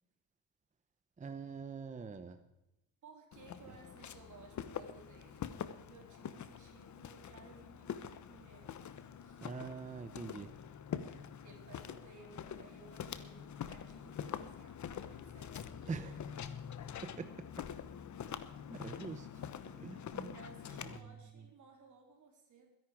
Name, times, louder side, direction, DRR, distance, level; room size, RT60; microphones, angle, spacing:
voice 1, 1.2-2.4 9.4-10.5 15.9-16.2 18.3-18.4 18.7-19.5 19.8-20.4 20.8-21.1, right 5 dB, 15° right, 9 dB, 0.8 m, -44 dB
voice 2, 3.0-8.8 9.2-9.5 11.4-16.2 20.3-22.7, right 4 dB, 45° right, 2 dB, 3.6 m, -59 dB
Walk footsteps, 3.3-21.0, left 8 dB, 40° left, 1.1 m, -45 dB
22.0 x 11.0 x 4.9 m, 0.92 s
cardioid pair, 130°, 43 cm